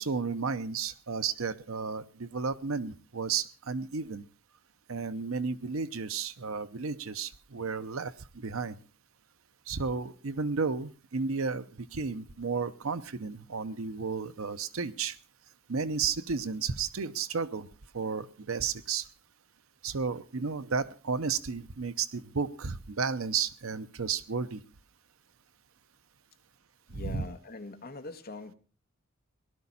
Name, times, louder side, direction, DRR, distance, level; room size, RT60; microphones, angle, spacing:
voice 1, 0.0-4.2 4.9-8.8 9.7-15.2 15.7-17.7 17.9-19.1 19.8-24.6 26.9-27.3, right 5 dB, 85° right, 13 dB, 0.8 m, -33 dB
voice 2, 26.9-28.5, left 2 dB, 50° left, 7 dB, 1.6 m, -42 dB
18.5 x 12.0 x 4.1 m, 0.34 s
head